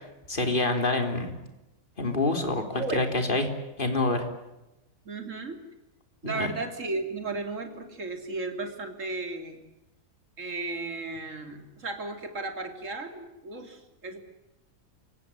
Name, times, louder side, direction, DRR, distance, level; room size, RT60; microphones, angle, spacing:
voice 1, 0.3-1.3 2.0-3.5 3.8-4.3 6.2-6.5, left 2 dB, 35° left, 6 dB, 3.6 m, -26 dB
voice 2, 5.1-5.6 6.2-9.6 10.4-14.2, right 3 dB, 55° right, 6 dB, 3.4 m, -35 dB
28.5 x 17.0 x 10.0 m, 0.97 s
omnidirectional pair, 1.6 m